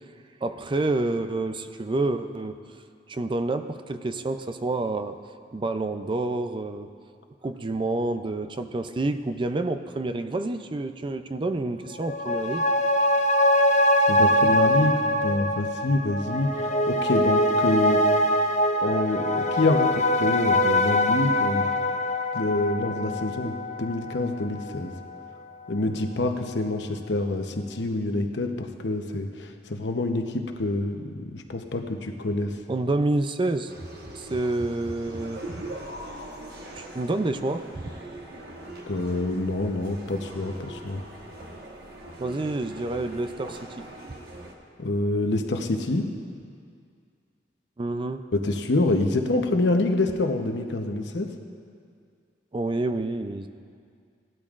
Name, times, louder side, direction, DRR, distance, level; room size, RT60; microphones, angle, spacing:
voice 1, 0.4-2.6 3.1-5.2 5.5-6.9 7.4-12.7 32.7-33.7 34.1-35.4 36.8-37.6 42.2-43.8 47.8-48.2 52.5-53.5, right 2 dB, 30° right, 9 dB, 0.4 m, -28 dB
sound 1, 11.9-24.8 25.1-25.2, left 1 dB, 40° left, 0.6 m, -23 dB
voice 2, 14.1-18.0 18.8-21.7 22.3-24.9 25.7-32.6 38.9-41.0 44.8-46.0 48.3-51.3, left 2 dB, 75° left, 5 dB, 0.9 m, -26 dB
sound 2, 33.7-44.5, right 1 dB, 65° right, 1.2 m, -41 dB
17.5 x 12.0 x 2.5 m, 2.2 s
head